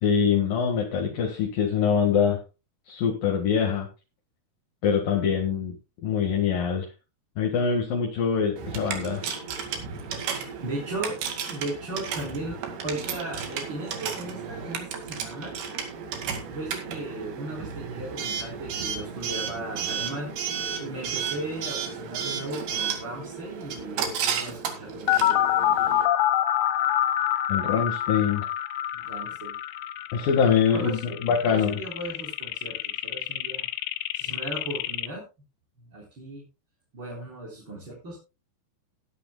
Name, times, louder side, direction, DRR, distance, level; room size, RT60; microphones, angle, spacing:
voice 1, 0.0-2.4 2.9-3.9 4.8-5.8 6.0-6.9 7.4-9.3 27.5-28.4 30.1-31.8, left 7 dB, 65° left, 1 dB, 3.4 m, -24 dB
Coin (dropping) / Alarm, 8.6-26.0, right 6 dB, 90° right, 4.3 m, -33 dB
voice 2, 10.3-11.2 11.5-15.5 16.5-20.3 20.8-25.4 28.9-29.6 30.7-33.7 34.1-35.2 35.9-36.4 36.9-38.2, right 2 dB, 30° right, -3 dB, 4.5 m, -37 dB
sound 1, 25.1-35.1, left 12 dB, 90° left, 2.7 m, -27 dB
20.0 x 10.0 x 2.3 m, 0.29 s
omnidirectional pair, 4.5 m